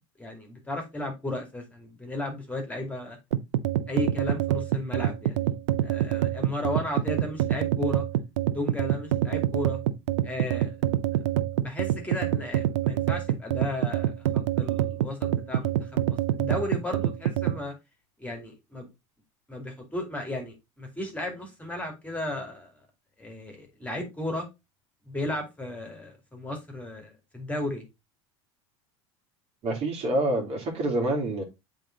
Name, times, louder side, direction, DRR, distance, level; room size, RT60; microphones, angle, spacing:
voice 1, 0.0-3.2 3.9-5.5 5.8-8.1 8.5-9.8 10.2-11.0 11.6-17.7 18.2-18.9 19.5-22.7 23.2-24.5 25.1-27.8, left 2 dB, 10° left, 2.4 m, -35 dB
sound 1, 3.3-17.6, right 12 dB, 85° right, 0.5 m, -26 dB
voice 2, 29.6-31.4, right 1 dB, 40° right, 2.5 m, -27 dB
7.7 x 3.5 x 3.8 m
supercardioid pair, 105°, 15 cm